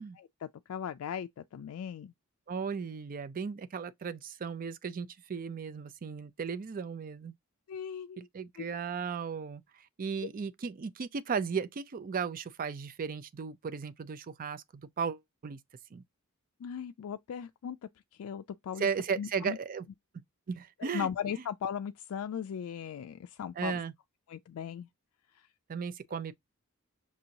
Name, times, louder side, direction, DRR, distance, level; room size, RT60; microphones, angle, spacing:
voice 1, 0.0-2.1 7.7-8.3 8.6-8.7 10.2-10.3 16.6-17.8 18.2-18.9 19.2-19.6 20.8-23.8 24.3-24.9 25.3-25.5, left 8 dB, 70° left, 0.3 m, -38 dB
voice 2, 2.5-7.3 8.2-15.6 15.9-16.0 18.8-19.9 20.5-21.1 23.6-23.9 25.7-26.3, right 6 dB, 40° right, 0.4 m, -36 dB
6.0 x 2.8 x 2.6 m
head